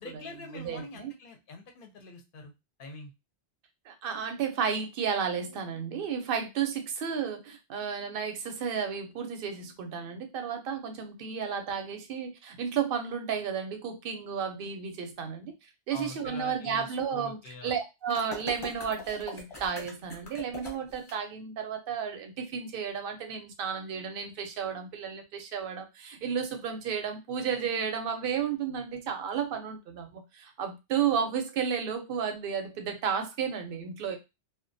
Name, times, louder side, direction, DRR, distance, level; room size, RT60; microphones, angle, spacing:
voice 1, 0.0-2.5 2.8-3.1 15.9-17.8, left 3 dB, 60° left, 4 dB, 0.7 m, -44 dB
voice 2, 0.5-1.1 3.9-15.5 15.9-34.2, right 7 dB, 60° right, 6 dB, 0.7 m, -33 dB
sound 1, 18.1-21.1, left 3 dB, 30° left, 0.8 m, -42 dB
2.3 x 2.1 x 2.5 m, 0.24 s
omnidirectional pair, 1.2 m